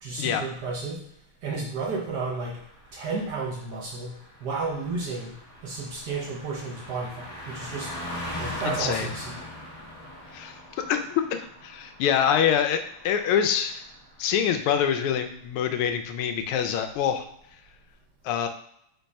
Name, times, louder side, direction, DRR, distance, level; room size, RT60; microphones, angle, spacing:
voice 1, 0.0-1.0 1.4-2.6 2.9-5.4 5.6-7.9 8.4-9.4, right 4 dB, 65° right, -1 dB, 1.1 m, -32 dB
Car passing by, 2.2-14.1 14.4-14.7, left 1 dB, 50° left, 0.4 m, -41 dB
voice 2, 8.6-9.1 10.3-10.5 10.9-11.2 11.6-13.8 14.2-17.3 18.2-18.5, left 8 dB, 85° left, 6 dB, 1.5 m, -25 dB
3.9 x 3.4 x 4.1 m, 0.71 s
omnidirectional pair, 2.4 m